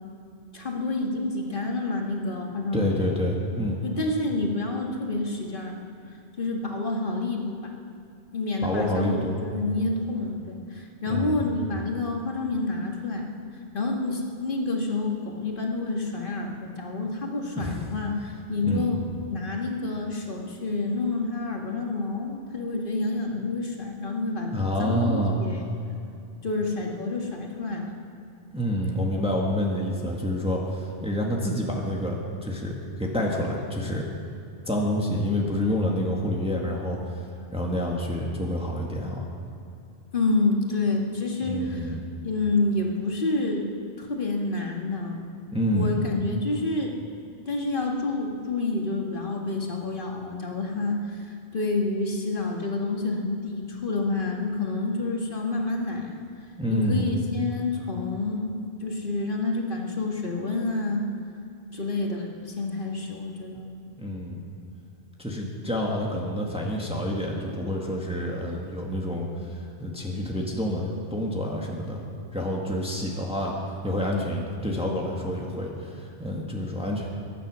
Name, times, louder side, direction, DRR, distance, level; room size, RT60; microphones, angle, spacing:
voice 1, 0.5-3.2 3.8-5.7 6.4-7.7 8.3-9.3 9.5-13.3 13.7-25.7 26.4-27.9 40.1-42.0 42.2-45.3 45.7-46.9 47.5-56.2 56.7-61.0 61.7-63.7, left 3 dB, 55° left, 0 dB, 2.1 m, -28 dB
voice 2, 2.7-3.8 8.6-9.4 11.0-11.5 17.6-17.8 18.7-18.9 24.5-25.4 28.5-32.2 32.4-34.0 34.6-37.2 37.5-39.3 41.4-42.0 45.5-46.0 56.6-57.2 64.0-64.4 65.2-72.0 72.3-73.5 73.8-77.1, equal, 5° right, -2 dB, 1.8 m, -28 dB
23.0 x 10.0 x 6.3 m, 2.5 s
omnidirectional pair, 1.1 m